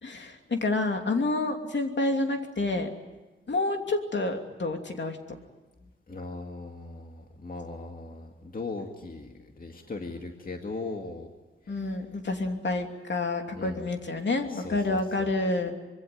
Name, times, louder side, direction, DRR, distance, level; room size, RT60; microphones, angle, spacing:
voice 1, 0.0-2.9 3.5-5.2 11.7-15.7, left 2 dB, 60° left, 4 dB, 2.9 m, -28 dB
voice 2, 6.1-11.3 11.7-12.0 13.5-13.9 14.5-15.3, left 3 dB, 45° left, 2 dB, 2.1 m, -39 dB
25.0 x 23.0 x 9.4 m, 1.2 s
wide cardioid pair, 95°, 21 cm